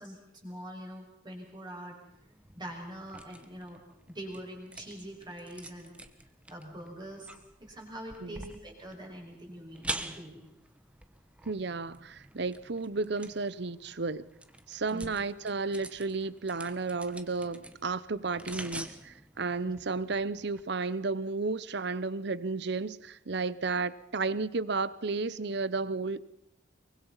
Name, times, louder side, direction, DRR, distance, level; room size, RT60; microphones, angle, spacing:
voice 1, 0.0-2.0 2.6-3.8 4.1-5.9 6.5-7.3 7.6-10.4 14.9-15.1 19.6-19.7, equal, 20° right, 5.6 m, -44 dB
sound 1, 2.1-20.6, right 1 dB, 5° right, 1.2 m, -46 dB
voice 2, 11.4-14.3 14.7-26.2, right 3 dB, 60° right, 0.8 m, -33 dB
24.0 x 23.5 x 5.6 m
head